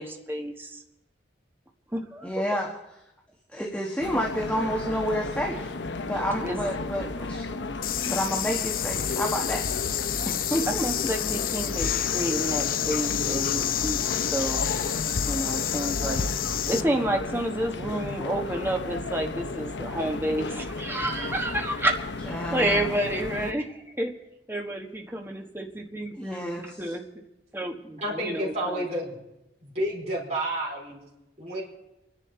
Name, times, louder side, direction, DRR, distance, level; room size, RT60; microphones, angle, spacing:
voice 1, 0.0-0.7 1.9-2.3 6.4-6.6 10.7-14.0 14.3-14.6 15.3-16.2 16.7-22.0 22.3-24.1 24.5-27.0 27.5-28.9, right 1 dB, 10° right, 2 dB, 1.4 m, -30 dB
voice 2, 2.2-2.7 3.5-5.7 6.0-9.6 10.2-10.9 22.2-23.0 26.1-26.9, equal, 5° left, -1 dB, 1.4 m, -30 dB
sound 1, 4.0-23.5, left 3 dB, 90° left, 0.8 m, -34 dB
sound 2, 7.8-16.8, left 10 dB, 50° left, 0.5 m, -29 dB
voice 3, 28.0-29.1 29.6-31.0 31.4-31.6, right 1 dB, 40° right, -6 dB, 4.5 m, -30 dB
28.5 x 10.5 x 4.4 m, 0.93 s
head